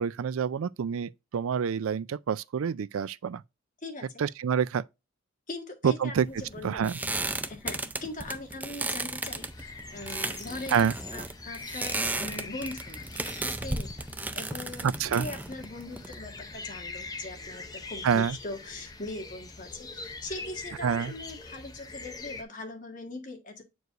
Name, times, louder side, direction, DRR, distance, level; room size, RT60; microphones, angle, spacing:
voice 1, 0.0-3.4 4.2-4.8 5.8-6.3 6.6-7.0 10.7-10.9 14.8-15.3 18.0-18.4 20.8-21.1, right 7 dB, 80° right, 0.4 m, -27 dB
voice 2, 5.5-6.8 7.5-13.0 13.4-14.1 14.3-14.9 15.2-23.6, left 2 dB, 35° left, 1.6 m, -41 dB
sound 1, 6.2-16.5, right 2 dB, 10° right, 0.4 m, -35 dB
sound 2, 9.3-22.4, left 3 dB, 20° left, 0.7 m, -43 dB
8.0 x 4.7 x 2.5 m
head